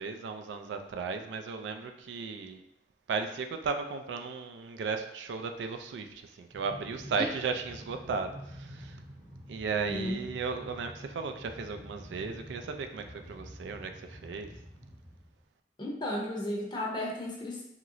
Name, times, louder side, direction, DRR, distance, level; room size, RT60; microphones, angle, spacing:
voice 1, 0.0-2.6 3.1-9.0 9.5-14.5, right 5 dB, 80° right, 7 dB, 0.3 m, -35 dB
Train, 6.5-15.4, equal, 10° right, 0.7 m, -48 dB
voice 2, 9.9-10.2 15.8-17.6, left 1 dB, 25° left, -2 dB, 0.6 m, -34 dB
3.0 x 2.8 x 2.5 m, 0.79 s
head